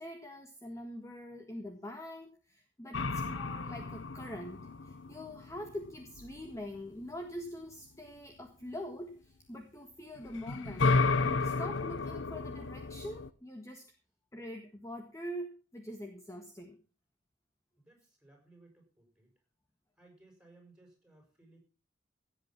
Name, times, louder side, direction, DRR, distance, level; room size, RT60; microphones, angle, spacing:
voice 1, 0.0-13.8 14.3-16.8, equal, 15° left, 4 dB, 1.6 m, -44 dB
sound 1, 2.9-6.6 10.2-13.3, left 3 dB, 85° left, 0.8 m, -32 dB
voice 2, 17.8-19.3 20.0-21.6, right 2 dB, 5° right, 2 dB, 6.5 m, -61 dB
16.5 x 8.3 x 5.9 m, 0.36 s
head